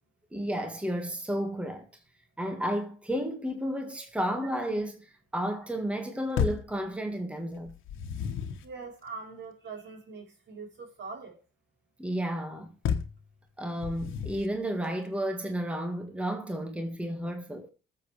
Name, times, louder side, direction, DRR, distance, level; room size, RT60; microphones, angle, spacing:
voice 1, 0.3-1.9 2.4-7.7 12.0-12.7 13.6-17.7, equal, 5° right, 1.7 m, -32 dB
sound 1, 6.4-6.8 7.7-8.7 12.8-13.2 13.8-14.6, left 7 dB, 85° left, 1.4 m, -31 dB
voice 2, 8.6-11.4, right 4 dB, 60° right, 4.0 m, -42 dB
19.5 x 7.6 x 3.3 m
cardioid pair, 90°, 20 cm